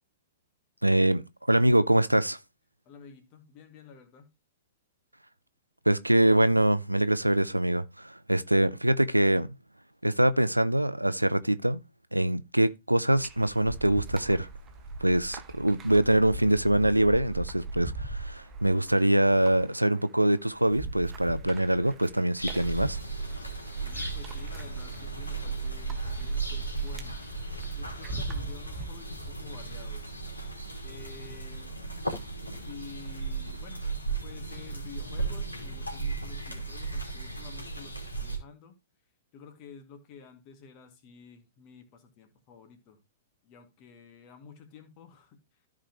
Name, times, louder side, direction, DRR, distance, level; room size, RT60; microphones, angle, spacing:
voice 1, 0.8-2.4 5.9-9.5 10.0-11.8 12.1-14.5 15.0-23.0, right 1 dB, 90° right, 0.5 m, -24 dB
voice 2, 2.9-4.3 23.8-27.2 27.7-30.1 30.8-31.8 32.6-33.8 34.2-38.8 39.3-43.0 43.4-45.4, left 6 dB, 35° left, 2.2 m, -50 dB
sound 1, 13.2-28.9, right 3 dB, 20° right, 1.2 m, -40 dB
sound 2, 22.4-38.4, right 4 dB, 85° left, 2.9 m, -35 dB
14.0 x 5.0 x 3.0 m
figure-of-eight pair, 105°, 0 cm